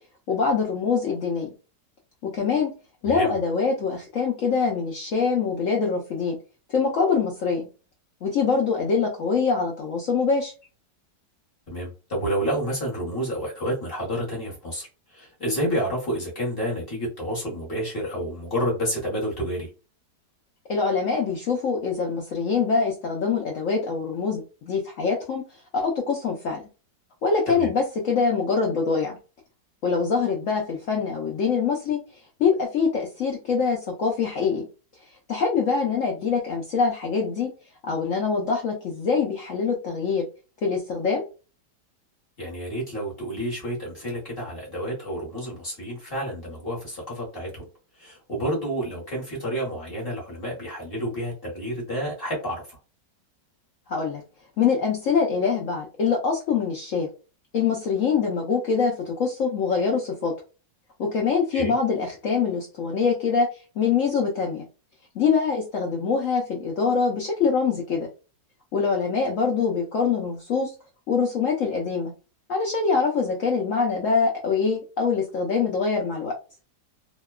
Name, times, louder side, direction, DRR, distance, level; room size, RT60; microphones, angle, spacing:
voice 1, 0.3-1.5 2.2-2.7 3.0-6.4 6.7-7.7 8.2-10.5 20.7-25.4 25.7-26.6 27.2-29.2 29.8-32.0 32.4-34.6 35.3-37.5 37.8-40.2 40.6-41.3 53.9-54.2 54.6-57.1 57.5-60.3 61.0-63.5 63.8-64.7 65.1-68.1 68.7-70.7 71.1-72.1 72.5-76.3, left 5 dB, 70° left, 0 dB, 0.7 m, -24 dB
voice 2, 3.0-3.4 11.7-19.7 27.5-27.7 42.4-47.7 48.0-52.8 61.5-61.7, equal, 40° left, -4 dB, 1.1 m, -29 dB
2.8 x 2.2 x 2.2 m, 0.33 s
omnidirectional pair, 1.9 m